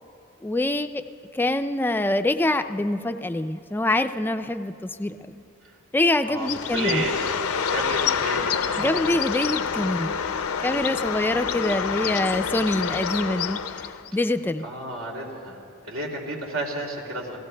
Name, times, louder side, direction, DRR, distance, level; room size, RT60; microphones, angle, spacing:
voice 1, 0.4-1.0 1.3-5.2 5.9-7.0 8.8-10.2 10.6-13.6 14.1-14.6, left 2 dB, 10° left, 9 dB, 0.3 m, -25 dB
voice 2, 6.3-7.3 7.7-9.1 14.6-15.6 15.8-17.4, right 1 dB, 85° right, -1 dB, 2.6 m, -31 dB
Bird, 6.4-14.1, left 7 dB, 90° left, 0.6 m, -27 dB
29.5 x 17.5 x 2.2 m, 2.6 s
head